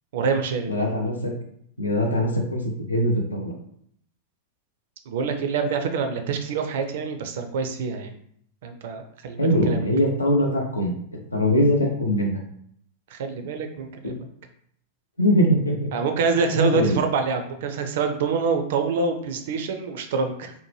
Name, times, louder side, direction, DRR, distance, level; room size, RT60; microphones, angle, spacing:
voice 1, 0.1-0.8 5.1-8.2 8.6-9.8 13.1-14.3 15.9-20.5, right 5 dB, 55° right, 6 dB, 0.4 m, -26 dB
voice 2, 0.7-1.3 1.8-3.5 9.4-10.9 11.3-12.4 14.0-14.2 15.2-15.9 16.5-17.0, equal, 80° left, 1 dB, 0.5 m, -22 dB
2.7 x 2.1 x 3.1 m, 0.66 s
figure-of-eight pair, 90°, 0 cm